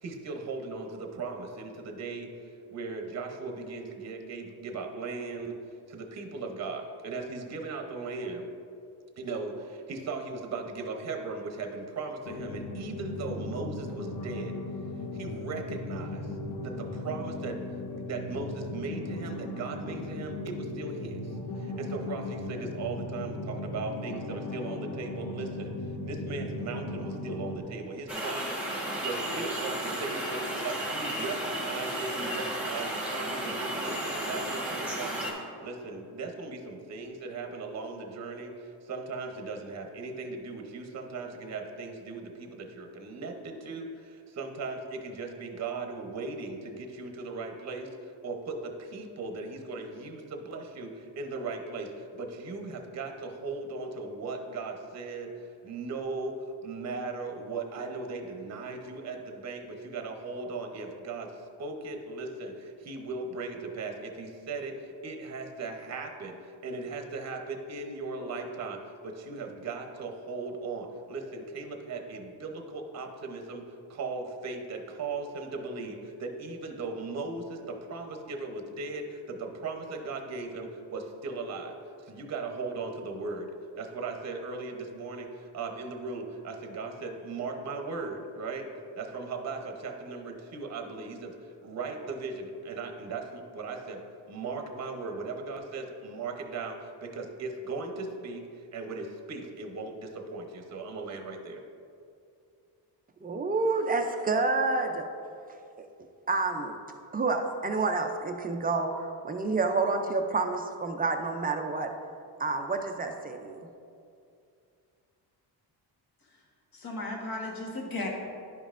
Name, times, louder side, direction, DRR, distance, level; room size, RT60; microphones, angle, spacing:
voice 1, 0.0-5.6 5.9-8.5 9.2-14.6 15.1-16.3 16.6-17.6 17.9-25.7 26.0-55.3 55.6-61.3 61.6-73.6 73.9-81.7 82.0-88.7 89.0-98.4 98.7-101.6, right 3 dB, 40° right, 4 dB, 0.8 m, -38 dB
sound 1, 12.2-27.6, left 2 dB, 75° left, 1.0 m, -37 dB
sound 2, 28.1-35.3, right 1 dB, 5° right, 1.3 m, -33 dB
voice 2, 103.2-105.1 105.8-105.9 106.3-106.8 107.1-111.9 112.4-113.7, right 3 dB, 20° right, 5 dB, 0.4 m, -29 dB
voice 3, 116.7-118.1, left 2 dB, 55° left, -1 dB, 1.4 m, -35 dB
10.5 x 5.3 x 2.5 m, 2.5 s
cardioid pair, 120°, 43 cm